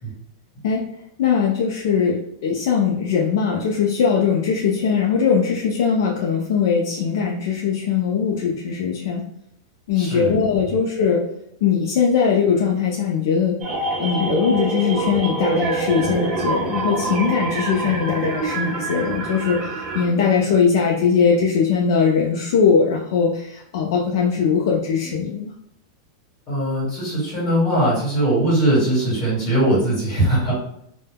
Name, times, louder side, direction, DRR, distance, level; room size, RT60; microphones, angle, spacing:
voice 1, 1.2-9.2 9.9-11.2 11.6-13.6 14.0-25.5, left 6 dB, 55° left, -2 dB, 0.4 m, -20 dB
voice 2, 9.9-10.4 10.6-10.8 26.5-30.5, right 1 dB, 25° left, -6 dB, 1.3 m, -20 dB
sound 1, 13.6-20.1, right 3 dB, 20° right, 0.4 m, -25 dB
2.2 x 2.1 x 3.3 m, 0.74 s
supercardioid pair, 170°, 2 cm